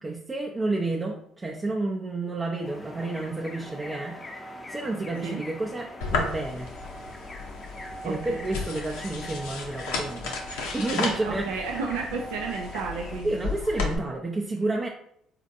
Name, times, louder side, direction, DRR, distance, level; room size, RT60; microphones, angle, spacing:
voice 1, 0.0-6.7 8.0-10.3 10.7-11.6 13.2-14.9, right 2 dB, 25° right, -2 dB, 0.5 m, -30 dB
sound 1, 2.6-13.2, equal, 25° left, 0.5 m, -42 dB
sound 2, 6.0-14.0, left 4 dB, 80° left, 0.6 m, -34 dB
voice 2, 8.0-8.5 11.2-13.5, right 4 dB, 85° right, 0 dB, 0.4 m, -32 dB
4.0 x 2.4 x 2.6 m, 0.69 s
hypercardioid pair, 60°, 0 cm